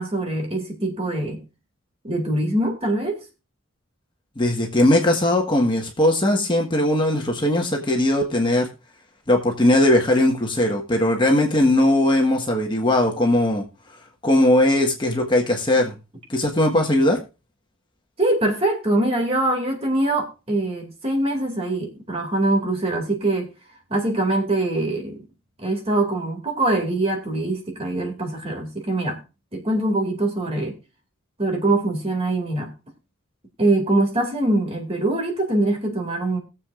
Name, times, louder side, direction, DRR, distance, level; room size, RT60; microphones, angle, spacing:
voice 1, 0.0-1.4 2.0-3.2 18.2-23.5 23.9-25.2 25.6-29.2 29.5-30.8 31.4-32.7 33.6-36.4, right 2 dB, 30° right, 2.4 m, -23 dB
voice 2, 4.4-8.7 9.3-13.6 14.2-15.9 16.3-17.2, left 1 dB, 25° left, 1.5 m, -19 dB
20.5 x 7.4 x 2.5 m
head